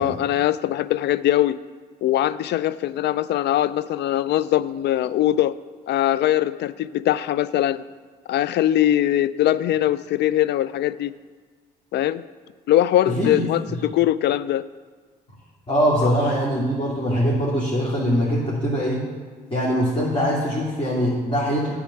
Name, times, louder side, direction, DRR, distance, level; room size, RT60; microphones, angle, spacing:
voice 1, 0.0-1.6 2.0-5.5 5.9-7.8 8.3-11.1 11.9-12.2 12.7-14.6 16.0-16.1, left 12 dB, 60° left, 17 dB, 0.4 m, -21 dB
voice 2, 13.0-13.5 15.7-19.0 19.5-21.7, equal, 30° left, -6 dB, 2.4 m, -22 dB
8.9 x 4.8 x 7.6 m, 1.5 s
hypercardioid pair, 55°, 20 cm